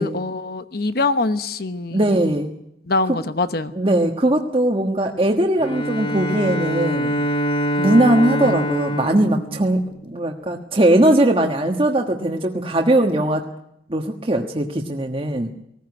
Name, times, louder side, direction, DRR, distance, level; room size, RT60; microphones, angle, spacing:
voice 1, 0.0-2.3 2.9-3.7 8.4-8.5, left 3 dB, 55° left, 11 dB, 1.0 m, -24 dB
voice 2, 1.9-2.5 3.7-7.1 7.8-13.4 13.9-15.5, right 1 dB, 30° right, 1 dB, 1.4 m, -19 dB
Bowed string instrument, 5.6-10.4, equal, 30° left, 1.6 m, -24 dB
19.5 x 16.0 x 9.6 m, 0.77 s
head